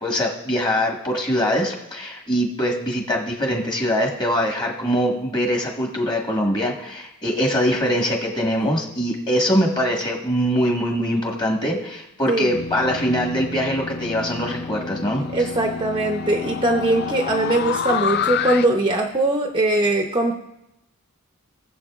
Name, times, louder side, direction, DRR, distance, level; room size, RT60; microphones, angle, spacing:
voice 1, 0.0-15.2, equal, 20° left, 0 dB, 1.5 m, -23 dB
sound 1, 12.5-18.7, left 6 dB, 45° left, 0.4 m, -28 dB
voice 2, 15.3-20.3, right 2 dB, 20° right, 3 dB, 0.7 m, -21 dB
19.5 x 7.4 x 2.4 m, 0.86 s
head